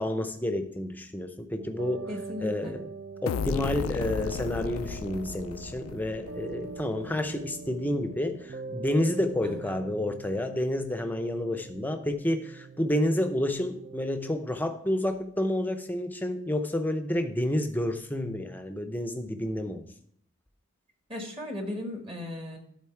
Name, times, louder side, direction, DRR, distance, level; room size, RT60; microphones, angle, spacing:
voice 1, 0.0-2.1 2.4-2.8 3.2-19.9, left 1 dB, 10° left, 7 dB, 0.6 m, -29 dB
sound 1, 1.6-14.3, right 4 dB, 45° right, 0.4 m, -43 dB
voice 2, 2.1-2.8 9.4-9.8 21.1-22.6, left 1 dB, 30° right, 3 dB, 1.3 m, -37 dB
sound 2, 3.3-6.9, left 6 dB, 85° left, 0.3 m, -34 dB
12.0 x 4.0 x 4.5 m, 0.65 s
head